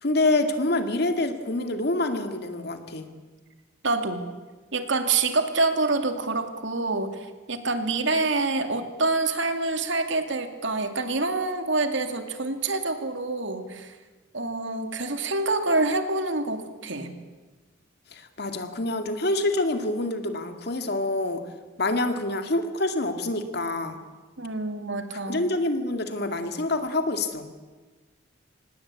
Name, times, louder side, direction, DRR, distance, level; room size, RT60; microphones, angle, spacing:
voice 1, 0.0-3.1 18.1-21.4 21.8-24.0 25.1-27.5, left 2 dB, 55° left, 7 dB, 2.2 m, -26 dB
voice 2, 3.8-4.3 4.7-13.9 14.3-17.1 24.4-25.5, right 3 dB, 65° right, 7 dB, 2.4 m, -26 dB
26.0 x 19.5 x 8.4 m, 1.3 s
head